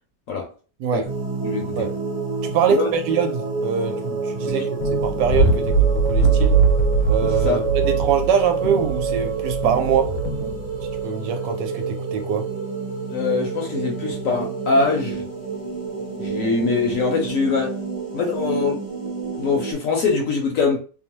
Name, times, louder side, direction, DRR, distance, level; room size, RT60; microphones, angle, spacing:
voice 1, 0.8-1.1 1.8-2.0 2.4-6.6 7.1-10.2 11.0-12.5, right 7 dB, 90° right, 1.2 m, -23 dB
sound 1, 1.0-19.7, right 5 dB, 15° right, 0.8 m, -28 dB
voice 2, 1.4-1.9 2.7-2.9 4.6-4.7 7.4-7.6 13.1-15.2 16.2-17.7 18.1-18.8 19.4-20.8, left 4 dB, 65° left, 0.9 m, -23 dB
sound 2, 4.8-11.0, right 4 dB, 85° left, 1.3 m, -21 dB
2.9 x 2.0 x 2.9 m
omnidirectional pair, 1.8 m